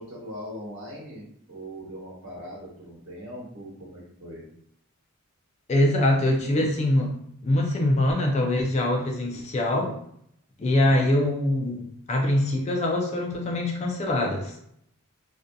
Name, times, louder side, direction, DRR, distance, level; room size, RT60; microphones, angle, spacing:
voice 1, 0.0-4.5, equal, 55° right, -5 dB, 1.0 m, -40 dB
voice 2, 5.7-7.2 7.4-10.0 10.6-14.6, left 1 dB, 30° left, 1 dB, 0.3 m, -23 dB
2.6 x 2.4 x 2.2 m, 0.71 s
head